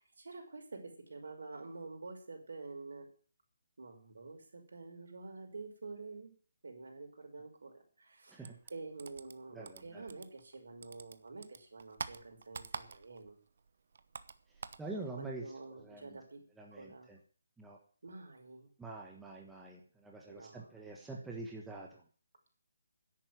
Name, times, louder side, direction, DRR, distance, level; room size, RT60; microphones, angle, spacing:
voice 1, 0.0-3.1 3.8-6.3 6.6-8.4 8.7-13.4 14.9-17.1 18.0-18.7 20.3-21.1, right 3 dB, 70° right, 2 dB, 5.7 m, -48 dB
sound 1, 8.4-10.6 10.8-13.3 13.6-14.9, right 5 dB, 45° right, 1.0 m, -46 dB
voice 2, 9.5-10.1 14.8-15.4 15.7-16.2 16.6-17.2 17.6-17.8 18.8-22.0, right 3 dB, 5° right, -2 dB, 1.3 m, -46 dB
10.5 x 8.6 x 9.5 m, 0.43 s
hypercardioid pair, 175°, 0 cm